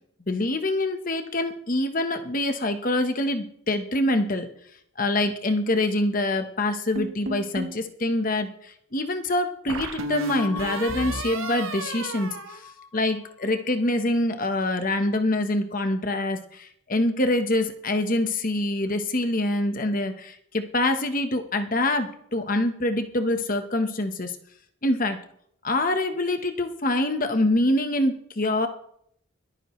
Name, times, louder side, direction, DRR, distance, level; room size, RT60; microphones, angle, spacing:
voice 1, 0.3-4.5 5.0-12.6 12.9-24.4 24.8-25.2 25.6-28.7, left 1 dB, 40° left, 7 dB, 1.2 m, -25 dB
sound 1, 7.0-7.8 9.7-13.3, right 1 dB, 70° right, 1.3 m, -33 dB
22.5 x 9.3 x 3.2 m, 0.67 s
head